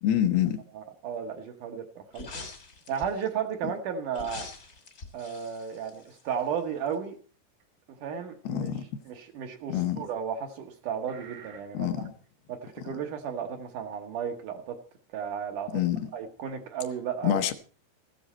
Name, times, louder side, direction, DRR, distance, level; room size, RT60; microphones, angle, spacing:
voice 1, 0.0-0.6 8.5-8.8 9.7-10.1 11.7-12.1 15.7-16.1 17.2-17.5, left 11 dB, 75° left, 2.7 m, -26 dB
voice 2, 0.7-2.4 2.9-4.5 5.1-7.2 8.0-8.7 9.1-12.1 12.5-14.8 15.1-15.8 16.1-17.5, right 7 dB, 65° right, 2.3 m, -34 dB
sound 1, 2.1-3.3 4.1-6.6 6.9-7.0, left 3 dB, 35° left, 1.4 m, -44 dB
sound 2, 5.7-6.1 7.6-7.7 8.2-8.3 9.8-9.9 11.1-11.6, right 7 dB, 85° right, 4.9 m, -48 dB
15.0 x 12.5 x 4.3 m
omnidirectional pair, 4.6 m